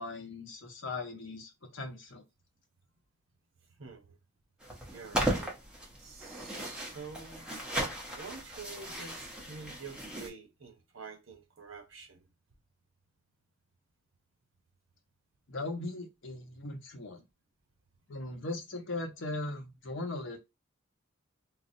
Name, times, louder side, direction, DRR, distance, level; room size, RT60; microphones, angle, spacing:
voice 1, 0.0-2.2 15.5-17.2 18.1-20.4, left 2 dB, 70° left, 0.8 m, -39 dB
voice 2, 3.8-4.2 4.9-5.6 6.0-7.5 8.1-12.3, right 4 dB, 80° right, 0.8 m, -47 dB
sound 1, 4.6-10.3, right 1 dB, 5° right, 0.8 m, -36 dB
4.0 x 2.1 x 2.6 m
head